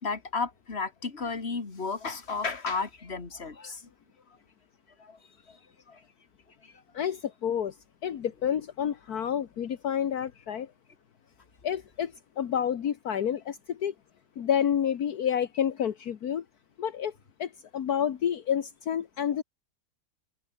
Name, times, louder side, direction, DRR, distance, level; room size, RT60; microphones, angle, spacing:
voice 1, 0.0-3.8 5.0-5.2 5.9-6.0 6.6-6.7, left 4 dB, 40° left, 2.6 m, -33 dB
voice 2, 6.9-7.8 8.0-10.7 11.6-13.9 14.4-16.4 16.8-17.1 17.4-19.4, left 9 dB, 70° left, 1.7 m, -29 dB
omnidirectional pair, 1.7 m